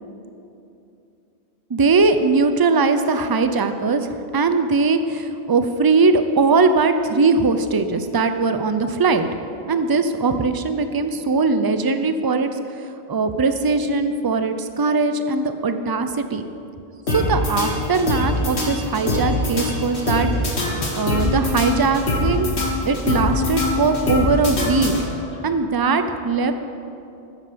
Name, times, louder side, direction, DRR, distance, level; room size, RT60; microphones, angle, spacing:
voice 1, 1.7-9.3 9.7-16.4 17.1-20.3 20.5-20.6 20.9-22.5 22.8-24.9 25.4-26.5, right 4 dB, 30° right, 9 dB, 0.5 m, -20 dB
sound 1, 17.1-25.4, left 2 dB, 80° left, 2.0 m, -23 dB
9.7 x 9.1 x 6.8 m, 2.7 s
omnidirectional pair, 1.1 m